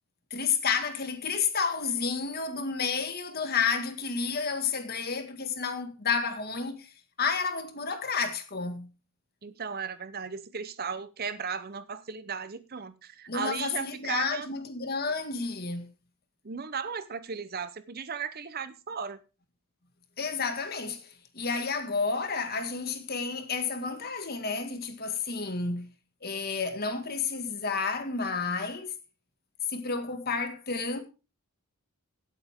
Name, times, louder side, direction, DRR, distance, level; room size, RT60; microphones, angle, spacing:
voice 1, 0.3-6.9 7.2-8.9 13.3-15.9 20.2-25.9 26.2-29.0 29.7-31.0, left 5 dB, 45° left, 1.9 m, -31 dB
voice 2, 9.4-14.5 16.4-19.2, right 6 dB, 45° right, 0.8 m, -36 dB
16.5 x 8.3 x 3.6 m
head